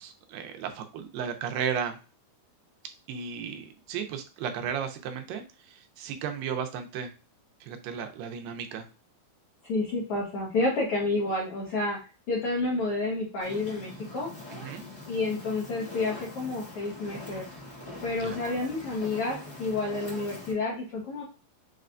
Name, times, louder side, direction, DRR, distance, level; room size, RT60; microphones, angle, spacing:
voice 1, 0.0-2.0 3.1-7.1 7.6-8.9 14.6-14.8 18.2-18.4, right 7 dB, 85° right, 6 dB, 2.4 m, -34 dB
voice 2, 9.7-12.0 12.3-14.3 15.1-17.4 18.0-21.2, left 2 dB, 80° left, -3 dB, 1.3 m, -29 dB
Fire, 13.4-20.5, left 2 dB, 60° left, 0.5 m, -43 dB
6.0 x 2.2 x 2.5 m, 0.34 s
omnidirectional pair, 4.0 m